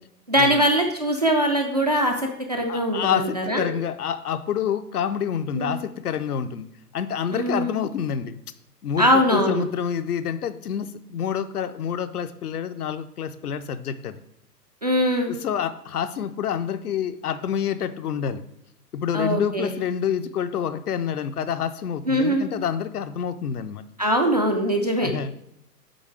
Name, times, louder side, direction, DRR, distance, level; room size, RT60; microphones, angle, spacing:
voice 1, 0.3-3.7 5.5-5.8 7.3-7.7 9.0-9.6 14.8-15.3 19.1-19.8 22.1-22.4 24.0-25.1, equal, 30° right, 2 dB, 0.3 m, -22 dB
voice 2, 2.7-6.7 6.9-8.4 8.8-14.2 15.3-18.4 18.9-23.8 25.0-25.3, left 8 dB, 65° left, 11 dB, 0.7 m, -28 dB
7.9 x 3.6 x 4.9 m, 0.77 s
figure-of-eight pair, 120°, 50 cm